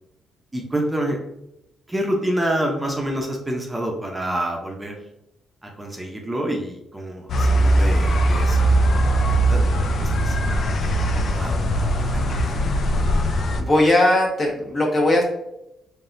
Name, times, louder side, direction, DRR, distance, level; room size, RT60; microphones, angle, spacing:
voice 1, 0.5-1.2 1.9-5.0 5.6-9.7 10.0-12.5, right 1 dB, 15° right, 0 dB, 0.7 m, -28 dB
sound 1, 7.3-13.6, right 1 dB, 55° left, 0.5 m, -20 dB
voice 2, 13.6-15.2, left 1 dB, 40° left, -2 dB, 1.3 m, -18 dB
4.0 x 3.5 x 2.6 m, 0.86 s
cardioid pair, 90°, 0 cm